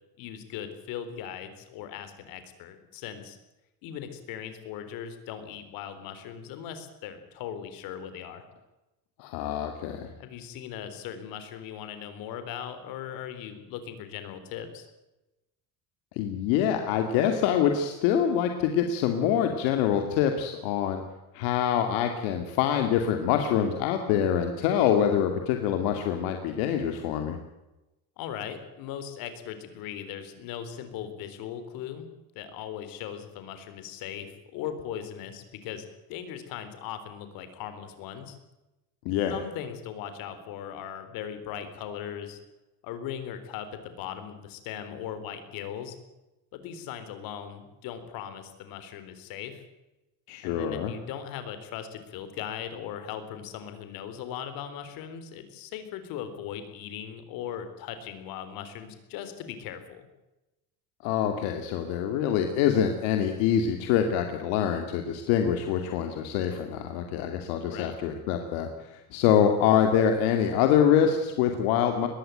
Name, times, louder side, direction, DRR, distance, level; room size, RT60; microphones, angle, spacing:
voice 1, 0.2-3.4 3.8-8.5 10.2-14.9 28.2-32.1 32.4-35.8 36.1-38.4 39.3-42.4 42.8-46.0 46.5-49.6 50.4-60.1 67.7-68.0, left 9 dB, 70° left, 10 dB, 3.8 m, -39 dB
voice 2, 9.2-10.1 16.2-21.0 21.3-27.4 39.0-39.3 50.3-50.9 61.0-72.1, left 9 dB, 90° left, 5 dB, 2.4 m, -25 dB
21.0 x 15.5 x 9.1 m, 0.99 s
cardioid pair, 140°, 35 cm